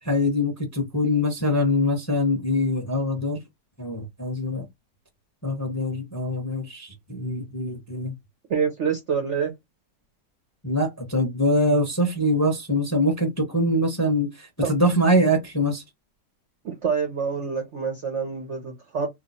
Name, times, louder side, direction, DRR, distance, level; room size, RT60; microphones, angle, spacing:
voice 1, 0.0-3.4 3.8-4.6 5.4-8.1 10.6-15.8, left 1 dB, 15° left, 0.7 m, -23 dB
voice 2, 8.5-9.5 14.6-14.7 16.6-19.1, right 6 dB, 55° right, 0.8 m, -26 dB
3.0 x 2.3 x 4.1 m
omnidirectional pair, 1.8 m